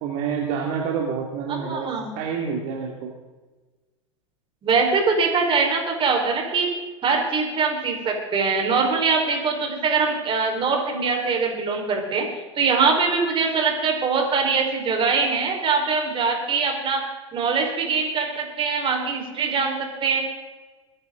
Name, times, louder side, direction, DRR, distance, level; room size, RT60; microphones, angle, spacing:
voice 1, 0.0-1.9 2.2-3.1, right 6 dB, 50° right, 0 dB, 2.5 m, -28 dB
voice 2, 1.5-2.1 4.6-6.7 7.0-12.3 12.6-17.0 17.3-20.2, right 4 dB, 30° right, 2 dB, 4.5 m, -22 dB
22.5 x 11.0 x 3.9 m, 1.3 s
hypercardioid pair, 95°, 16 cm